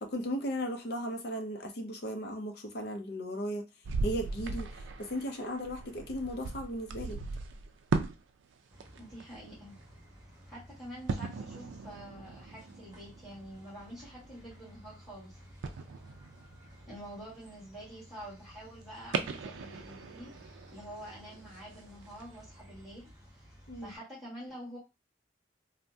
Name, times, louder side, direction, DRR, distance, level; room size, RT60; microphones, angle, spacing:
voice 1, 0.0-3.7 4.0-4.7 5.0-7.2 23.7-23.9, equal, 55° left, 0.6 m, -36 dB
sound 1, 3.8-8.2 8.5-9.5 11.1-15.2 15.6-17.5 18.0-18.1 19.1-22.4 22.9-23.0, right 4 dB, 80° right, 0.4 m, -38 dB
sound 2, 8.7-24.0, equal, 20° right, 0.9 m, -55 dB
voice 2, 9.0-9.7 10.5-15.4 15.6-15.8 16.9-23.5 23.8-24.8, equal, ahead, 1.7 m, -47 dB
3.3 x 2.1 x 2.6 m
head